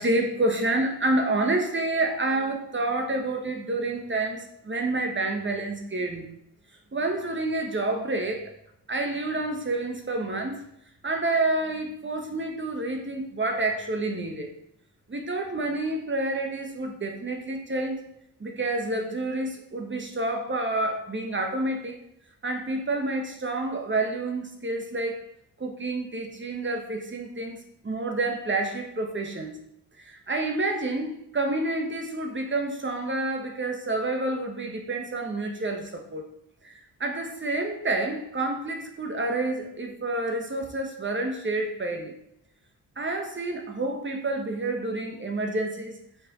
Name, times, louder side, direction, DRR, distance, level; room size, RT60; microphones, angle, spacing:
voice 1, 0.0-6.3 6.9-8.5 8.9-10.6 11.0-14.5 15.1-18.0 18.4-22.0 22.4-25.2 25.6-29.6 30.0-36.3 36.6-42.1 43.0-46.0, right 2 dB, 30° right, 4 dB, 1.1 m, -28 dB
5.7 x 4.3 x 3.8 m, 0.76 s
cardioid pair, 70°, 39 cm